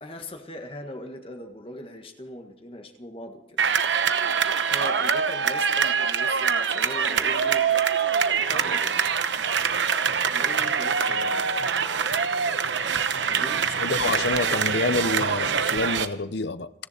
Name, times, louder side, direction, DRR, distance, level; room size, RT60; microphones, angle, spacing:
voice 1, 0.0-3.6 4.7-7.6 8.3-9.0 10.3-11.4 13.2-13.6, left 1 dB, 30° left, 1.5 m, -40 dB
sound 1, 3.6-16.1, right 6 dB, 85° right, 1.0 m, -24 dB
Trumpet, 6.9-13.1 13.4-14.1, equal, 10° left, 1.5 m, -45 dB
voice 2, 13.8-16.7, left 3 dB, 70° left, 0.7 m, -27 dB
29.0 x 10.5 x 4.3 m
head